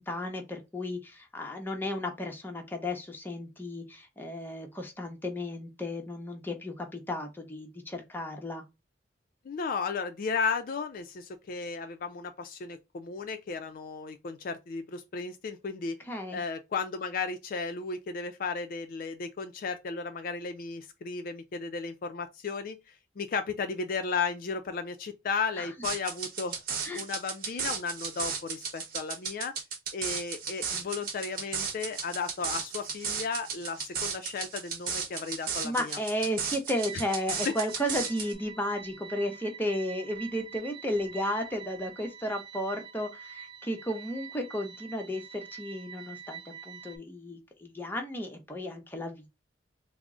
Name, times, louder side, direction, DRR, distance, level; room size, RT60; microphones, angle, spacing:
voice 1, 0.0-8.6 16.1-16.4 25.6-25.7 26.8-27.0 35.6-49.3, left 1 dB, 10° left, 0.7 m, -34 dB
voice 2, 9.5-16.0 16.3-26.6 27.0-29.5 29.9-36.0 37.4-37.5, left 5 dB, 50° left, 0.4 m, -34 dB
sound 1, 25.8-38.3, right 6 dB, 55° right, 0.9 m, -35 dB
sound 2, 36.7-47.0, right 7 dB, 25° right, 0.5 m, -46 dB
3.6 x 2.0 x 3.6 m
head